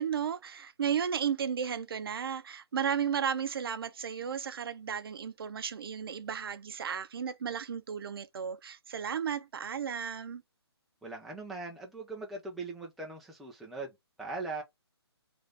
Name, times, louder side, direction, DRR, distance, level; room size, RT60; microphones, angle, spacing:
voice 1, 0.0-10.4, right 7 dB, 60° right, 0.5 m, -34 dB
voice 2, 11.0-14.6, right 3 dB, ahead, 0.4 m, -40 dB
3.2 x 2.5 x 3.8 m
hypercardioid pair, 145°, 14 cm